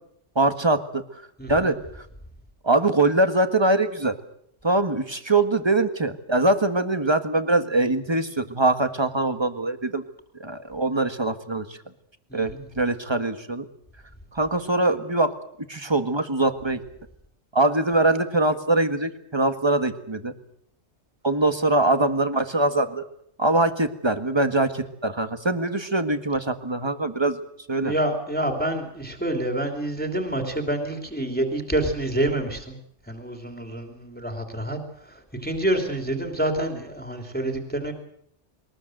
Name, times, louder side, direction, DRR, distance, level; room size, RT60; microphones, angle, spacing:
voice 1, 0.3-1.2 1.5-2.0 2.6-4.1 4.6-10.0 10.4-11.8 12.3-13.6 14.3-15.3 15.7-16.8 17.5-20.3 21.2-23.0 23.4-27.4 27.7-27.9, right 2 dB, 20° right, 9 dB, 1.7 m, -23 dB
voice 2, 27.8-32.7 33.1-34.8 35.4-37.9, right 1 dB, 5° left, 4 dB, 3.1 m, -27 dB
22.5 x 20.0 x 7.8 m, 0.72 s
omnidirectional pair, 1.2 m